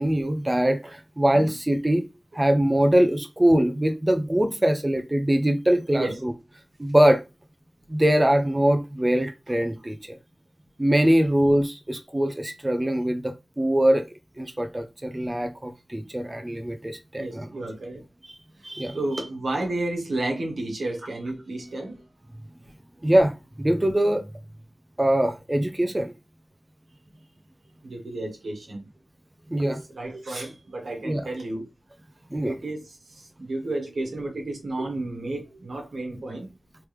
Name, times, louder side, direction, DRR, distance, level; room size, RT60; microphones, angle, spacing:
voice 1, 0.0-2.1 2.3-6.3 6.8-7.2 7.9-10.2 10.8-14.1 14.4-17.5 18.2-18.3 18.6-19.0 23.0-23.3 23.6-24.2 25.0-26.1 29.5-29.8 31.0-31.3 32.3-32.5, right 1 dB, 20° right, 0.5 m, -22 dB
voice 2, 17.1-18.0 18.6-22.0 27.8-28.9 29.6-31.7 32.4-36.5, right 2 dB, 85° right, 1.2 m, -32 dB
3.3 x 3.2 x 3.1 m
wide cardioid pair, 80°, 0 cm